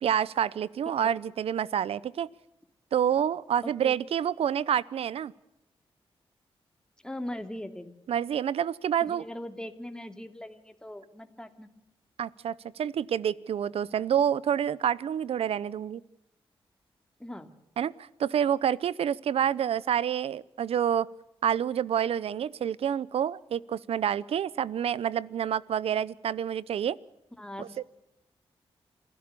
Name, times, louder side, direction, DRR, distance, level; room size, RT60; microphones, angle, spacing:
voice 1, 0.0-2.3 2.9-5.3 8.1-9.2 12.2-16.0 17.8-21.1 21.4-27.0 27.6-27.7, right 9 dB, 80° right, 21 dB, 0.7 m, -28 dB
voice 2, 3.6-4.0 7.0-7.9 9.1-11.7 13.9-14.1 17.2-17.5 27.4-27.8, left 1 dB, 10° left, 7 dB, 2.5 m, -40 dB
27.5 x 16.0 x 6.9 m, 0.91 s
cardioid pair, 75°, 10 cm